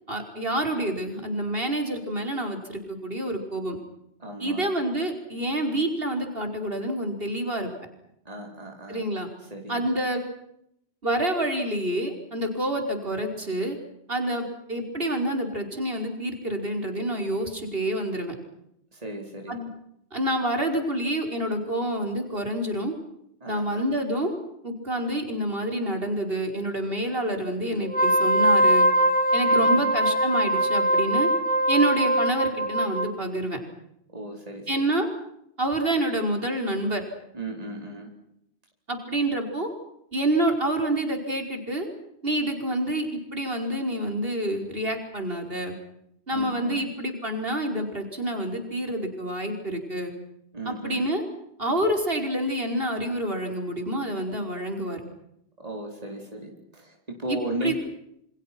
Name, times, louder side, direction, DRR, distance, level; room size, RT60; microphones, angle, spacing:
voice 1, 0.1-3.8 4.4-7.7 8.9-9.3 9.7-10.2 11.0-13.8 14.1-18.3 19.5-19.7 20.1-22.9 23.5-24.3 24.6-28.9 29.3-31.3 31.7-33.6 34.7-35.1 35.6-37.0 38.9-39.7 40.1-41.9 42.2-45.7 46.3-50.1 50.6-51.2 51.6-55.0 57.3-57.7, right 1 dB, 55° right, 4 dB, 5.5 m, -27 dB
voice 2, 4.2-4.7 8.2-9.0 9.5-9.9 18.9-19.6 23.4-23.8 29.5-29.9 34.1-34.8 37.3-38.1 46.3-46.9 50.5-51.0 55.6-57.7, right 1 dB, 35° right, 1 dB, 4.6 m, -35 dB
Wind instrument woodwind instrument, 27.8-33.1, right 1 dB, 5° left, 2.6 m, -22 dB
29.0 x 27.5 x 6.1 m, 0.77 s
omnidirectional pair, 1.1 m